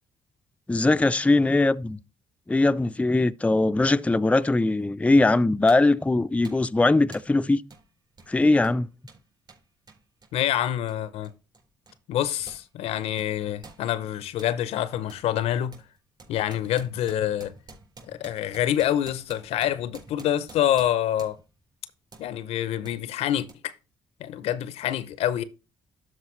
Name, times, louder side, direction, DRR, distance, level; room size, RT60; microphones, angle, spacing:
voice 1, 0.7-2.0 2.5-7.6 8.3-8.9, left 2 dB, 10° left, 0.4 m, -21 dB
sound 1, 4.8-4.9 5.7-6.0 6.4-6.7 7.1-7.4 7.7-7.9 8.1-12.7 12.9-14.6 15.1-15.3 15.7-21.6 22.1-22.3 22.8-23.0 23.5-23.6, right 3 dB, 40° right, 4.4 m, -50 dB
voice 2, 10.3-11.3 12.1-15.7 16.3-17.5 18.1-21.4 22.2-23.7 24.2-25.4, left 11 dB, 75° left, 0.6 m, -26 dB
12.5 x 4.4 x 3.1 m
hypercardioid pair, 50°, 11 cm